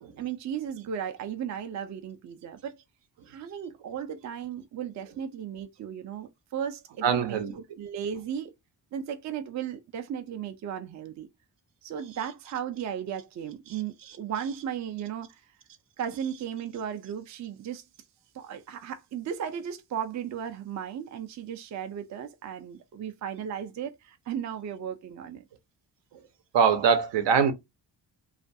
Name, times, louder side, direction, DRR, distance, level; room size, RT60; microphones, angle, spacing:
voice 1, 0.2-2.8 3.3-7.4 7.8-8.5 8.9-11.3 11.8-15.4 16.0-17.8 18.3-25.4, right 8 dB, 45° right, 0.4 m, -35 dB
voice 2, 7.0-7.5 26.5-27.5, right 6 dB, 80° right, 0.7 m, -23 dB
2.4 x 2.2 x 2.6 m
cardioid pair, 105°, 42 cm